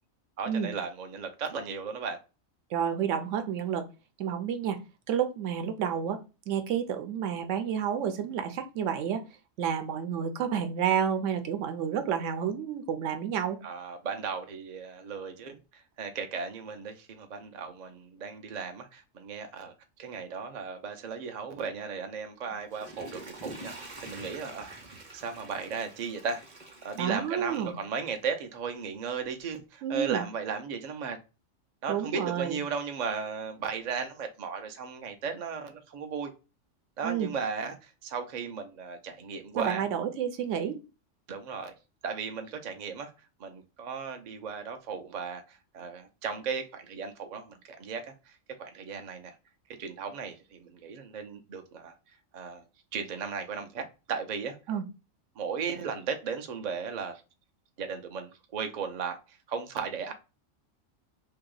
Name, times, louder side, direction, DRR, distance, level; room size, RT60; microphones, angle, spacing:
voice 1, 0.4-2.2 13.6-19.7 20.0-26.4 26.8-31.2 31.8-36.3 37.0-39.8 41.3-41.7 42.0-43.1 43.4-48.1 48.6-49.3 49.8-51.9 52.3-52.6 52.9-54.6 55.4-57.2 57.8-60.1, right 5 dB, 55° right, 0.5 m, -36 dB
voice 2, 2.7-3.9 4.2-4.8 5.1-6.2 6.5-9.2 9.6-13.6 27.0-27.7 29.8-30.2 31.9-32.6 37.0-37.3 39.6-40.8 54.7-54.8, right 8 dB, 75° right, 0.9 m, -30 dB
Water / Toilet flush, 22.5-27.8 28.2-28.3, right 2 dB, 35° right, 0.8 m, -46 dB
2.8 x 2.8 x 3.7 m
omnidirectional pair, 1.3 m